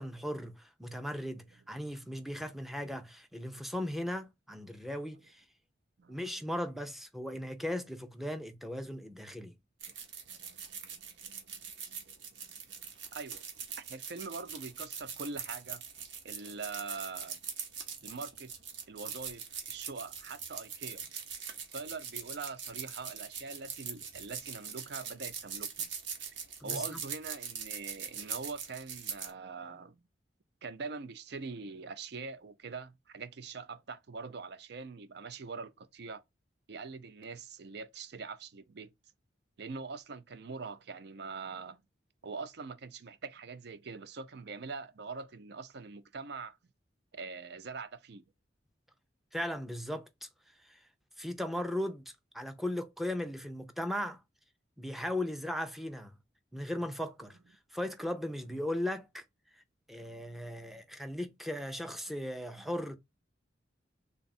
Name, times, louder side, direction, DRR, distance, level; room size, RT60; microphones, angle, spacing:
voice 1, 0.0-5.4 6.1-9.5 26.6-27.0 49.3-50.3 50.6-50.8 51.2-52.0 52.3-54.2 54.8-56.1 56.5-59.2 59.5-59.6 59.9-63.0, left 1 dB, ahead, 0.5 m, -37 dB
sound 1, 9.8-29.3, right 7 dB, 80° right, 1.0 m, -42 dB
voice 2, 10.3-11.4 11.9-12.1 13.1-13.4 13.9-15.8 16.2-17.4 18.0-18.5 18.9-21.1 21.7-25.9 26.3-30.0 30.6-36.2 36.7-38.9 39.6-41.8 42.2-46.6 47.1-48.2 60.0-60.8, right 4 dB, 60° right, 0.5 m, -43 dB
3.4 x 2.3 x 4.0 m
head